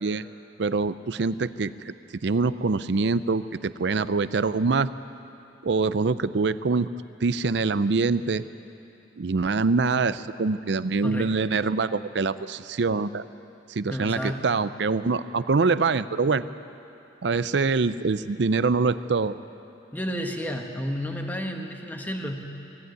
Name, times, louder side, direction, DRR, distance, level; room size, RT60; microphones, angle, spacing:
voice 1, 0.6-1.9 2.2-4.9 5.6-6.9 7.2-8.4 9.2-13.2 13.7-16.4 17.2-19.4, right 4 dB, 65° right, 14 dB, 0.5 m, -24 dB
voice 2, 11.0-11.3 13.9-14.4 19.9-22.5, equal, 10° left, 2 dB, 1.4 m, -31 dB
20.0 x 15.5 x 9.4 m, 2.8 s
head